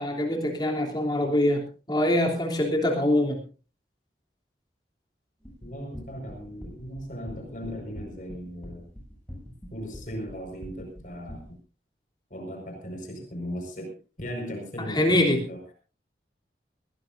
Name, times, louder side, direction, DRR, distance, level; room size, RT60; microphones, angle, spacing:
voice 1, 0.0-1.6 1.9-3.4 14.9-15.4, left 1 dB, 25° left, 1 dB, 3.1 m, -24 dB
sound 1, 5.4-11.5, equal, 5° left, 7.9 m, -43 dB
voice 2, 5.6-8.9 9.7-11.6 12.3-15.7, equal, 45° left, 3 dB, 5.0 m, -37 dB
21.0 x 17.0 x 2.6 m, 0.35 s
head